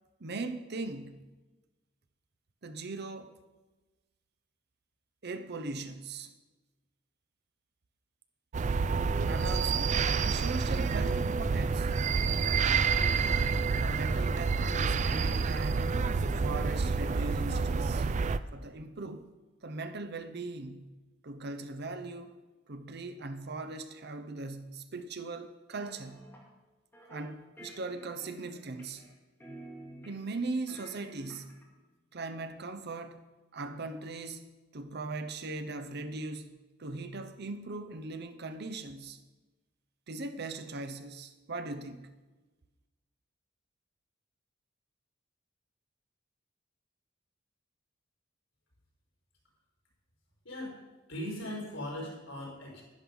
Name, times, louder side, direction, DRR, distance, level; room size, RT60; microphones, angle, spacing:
voice 1, 0.2-1.3 2.6-3.4 5.2-6.3 9.2-12.0 13.8-15.9 16.2-18.1 18.5-19.3 19.6-21.0 21.2-22.4 22.7-26.3 27.1-29.0 30.0-31.6 32.1-33.2 33.5-36.5 36.8-39.2 40.1-42.1, right 3 dB, 55° right, 0.8 m, -39 dB
sound 1, 8.5-18.4, right 4 dB, 40° right, 0.4 m, -28 dB
sound 2, 25.8-26.5 26.9-27.3 27.6-29.1 29.4-30.4 30.7-31.7, right 1 dB, 10° left, 2.5 m, -50 dB
voice 2, 50.4-50.8 51.1-52.8, left 1 dB, 80° left, 5.0 m, -39 dB
10.5 x 10.5 x 5.4 m
head